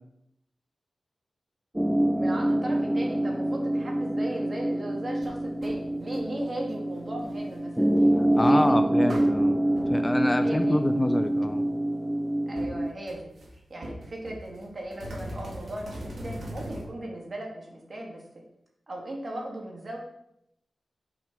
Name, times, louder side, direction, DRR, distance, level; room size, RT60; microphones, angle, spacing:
sound 1, 1.7-12.9, right 1 dB, 10° right, 0.9 m, -26 dB
voice 1, 2.2-7.9 8.5-8.8 10.4-10.8 12.5-13.3 13.7-18.2 18.9-20.0, right 1 dB, 45° right, -1 dB, 2.2 m, -37 dB
sound 2, 5.2-5.3 5.6-5.8 6.1-6.5 6.9-7.6 8.6-8.7 9.1-9.3 9.8-9.9 10.4-10.7 11.0-11.1 11.3-11.7 12.6-12.7 13.1-13.5 13.8-16.8, right 1 dB, 70° right, 2.0 m, -39 dB
voice 2, 8.2-9.6 9.9-11.6, left 1 dB, 20° left, 8 dB, 0.5 m, -27 dB
6.1 x 5.0 x 6.1 m, 0.78 s
wide cardioid pair, 85°, 0 cm